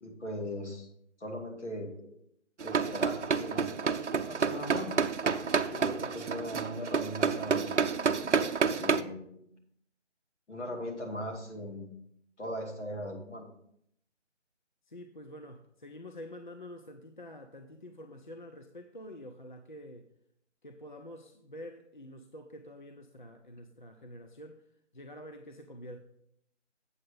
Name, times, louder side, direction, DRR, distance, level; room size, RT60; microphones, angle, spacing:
voice 1, 0.0-0.9 1.2-2.2 2.6-4.9 5.5-7.8 8.8-9.4 10.5-12.0 12.4-13.5, equal, 70° left, 1 dB, 2.3 m, -39 dB
sound 1, 2.6-9.0, right 5 dB, 70° right, 0.6 m, -29 dB
voice 2, 14.9-20.1 20.6-24.6 24.9-26.0, left 1 dB, 40° left, 5 dB, 0.5 m, -47 dB
7.9 x 7.5 x 3.8 m, 0.72 s
figure-of-eight pair, 170°, 36 cm